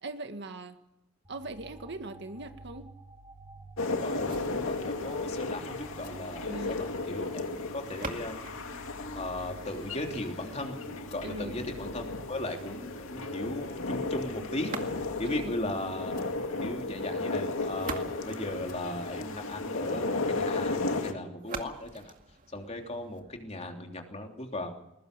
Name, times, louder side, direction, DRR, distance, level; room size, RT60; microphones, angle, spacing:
voice 1, 0.0-0.8 1.3-2.9 6.5-6.8 11.2-11.6 15.2-15.5, right 2 dB, 60° right, 7 dB, 1.9 m, -40 dB
sound 1, 1.2-17.6, right 2 dB, 20° right, 2.4 m, -50 dB
sound 2, 3.8-21.1, left 3 dB, 80° left, 2.3 m, -35 dB
voice 2, 4.0-7.5 7.7-8.4 9.1-10.8 11.1-16.3 16.6-22.1 22.5-24.7, left 1 dB, 30° left, 3 dB, 3.2 m, -37 dB
sound 3, 4.2-10.2 14.6-15.4 17.4-19.4 21.4-23.4, right 4 dB, 40° right, 2.2 m, -45 dB
21.5 x 20.0 x 6.9 m, 0.88 s
head